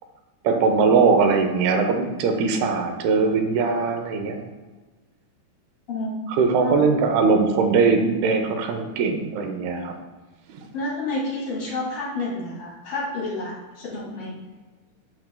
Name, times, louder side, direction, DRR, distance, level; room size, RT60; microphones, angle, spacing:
voice 1, 0.4-4.4 6.3-9.9 10.5-10.6, right 4 dB, 85° right, 5 dB, 2.7 m, -20 dB
voice 2, 5.9-6.2 6.5-6.9 10.7-14.3, left 2 dB, 40° left, -6 dB, 2.8 m, -29 dB
12.5 x 4.3 x 2.2 m, 1.3 s
omnidirectional pair, 4.3 m